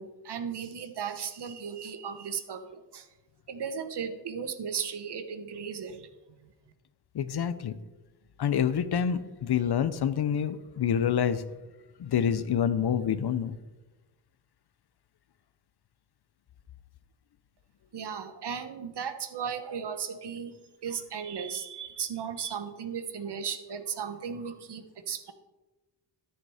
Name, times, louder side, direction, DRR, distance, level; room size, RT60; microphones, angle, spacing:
voice 1, 0.0-3.1 3.5-6.1 17.9-20.5 20.8-25.3, right 7 dB, 65° right, 9 dB, 1.1 m, -36 dB
voice 2, 7.1-7.8 8.4-11.4 12.0-13.6, left 8 dB, 60° left, 14 dB, 0.7 m, -27 dB
13.0 x 6.8 x 4.9 m, 1.1 s
wide cardioid pair, 105°, 44 cm